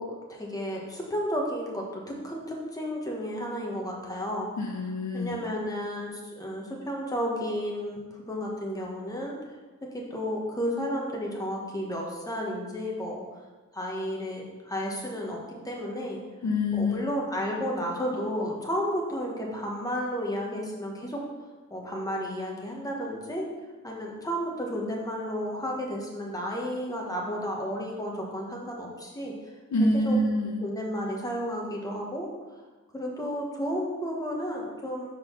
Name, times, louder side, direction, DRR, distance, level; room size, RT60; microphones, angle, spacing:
voice 1, 0.0-4.5 5.1-9.3 9.9-13.2 13.7-15.4 15.6-16.2 16.8-21.2 21.7-23.5 23.8-29.5 30.0-30.2 30.6-32.3 32.9-35.1, equal, 10° left, -2 dB, 1.3 m, -32 dB
voice 2, 4.6-5.4 16.4-17.0 29.7-30.6, left 1 dB, 70° left, 1 dB, 1.0 m, -26 dB
5.2 x 4.1 x 5.7 m, 1.2 s
wide cardioid pair, 95°, 29 cm